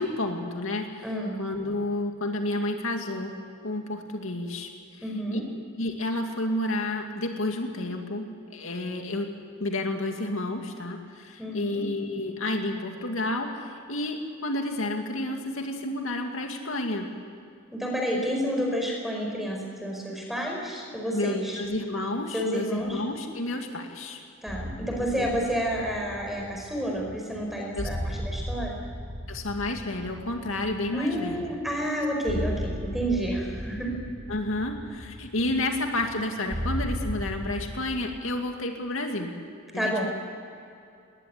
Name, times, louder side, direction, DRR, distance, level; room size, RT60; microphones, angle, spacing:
voice 1, 0.0-1.1 1.4-3.3 3.6-4.7 5.3-5.4 5.8-9.3 9.6-17.1 21.1-24.2 25.2-25.3 27.7-27.9 29.3-31.5 34.3-39.3 39.7-40.1, left 1 dB, 75° left, 3 dB, 2.4 m, -30 dB
voice 2, 1.0-1.4 5.0-5.4 11.4-11.8 17.7-21.6 22.3-23.0 24.4-28.8 30.9-34.0 39.7-40.1, equal, ahead, 0 dB, 4.9 m, -30 dB
sound 1, 24.5-37.7, equal, 50° right, 4.5 m, -36 dB
20.0 x 19.5 x 9.7 m, 2.5 s
head